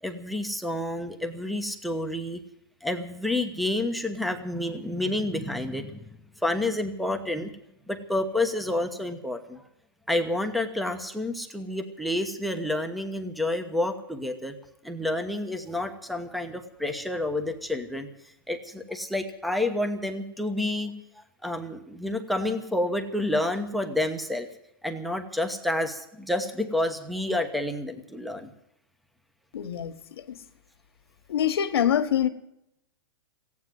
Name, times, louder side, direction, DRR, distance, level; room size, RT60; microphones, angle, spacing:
voice 1, 0.0-2.4 2.8-6.0 6.4-7.5 7.9-9.6 10.1-14.6 14.8-18.1 18.5-24.5 24.8-28.5, left 1 dB, ahead, 1.1 m, -29 dB
voice 2, 29.5-30.4 31.3-32.3, left 9 dB, 90° left, 1.7 m, -25 dB
15.5 x 9.6 x 9.4 m
hypercardioid pair, 155°, 13 cm